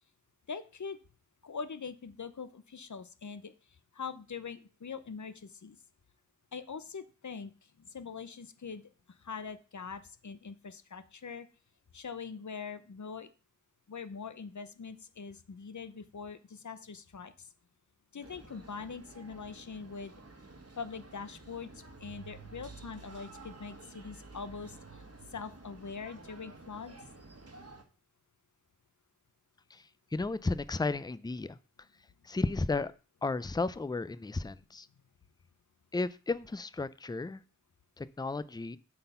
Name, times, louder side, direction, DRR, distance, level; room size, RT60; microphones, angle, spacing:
voice 1, 0.5-1.0 1.4-3.5 3.9-5.8 6.5-8.9 9.2-11.5 11.9-13.3 13.9-17.5 18.1-20.1 20.8-25.0 25.3-27.0, left 5 dB, 75° left, 13 dB, 0.7 m, -43 dB
sound 1, 18.2-27.8, right 3 dB, 55° right, 1.3 m, -51 dB
voice 2, 30.1-31.6 32.2-32.9 33.2-34.9 35.9-37.4 38.0-38.8, left 3 dB, 15° left, 16 dB, 0.4 m, -33 dB
7.7 x 4.2 x 5.5 m, 0.36 s
wide cardioid pair, 45°, 30 cm